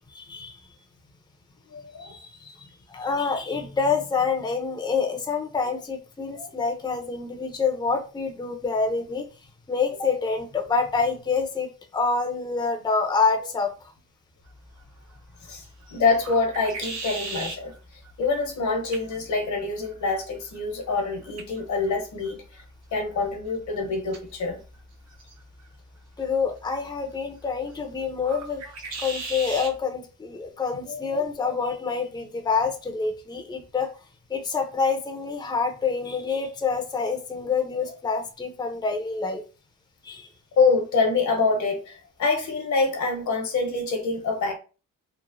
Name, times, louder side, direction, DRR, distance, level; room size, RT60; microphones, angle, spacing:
voice 1, 0.1-0.6 2.0-9.2 9.7-13.7 26.2-28.6 29.0-33.9 34.3-39.4 40.0-40.3, left 5 dB, 15° left, 0.5 m, -27 dB
voice 2, 1.7-2.1 6.4-6.5 15.5-17.7 18.2-22.4 22.9-24.6 30.9-31.2 40.6-44.5, left 4 dB, 70° left, 0.9 m, -25 dB
sound 1, 14.4-29.8, right 3 dB, 55° right, 0.7 m, -41 dB
3.0 x 2.0 x 2.5 m
cardioid pair, 85°, 30 cm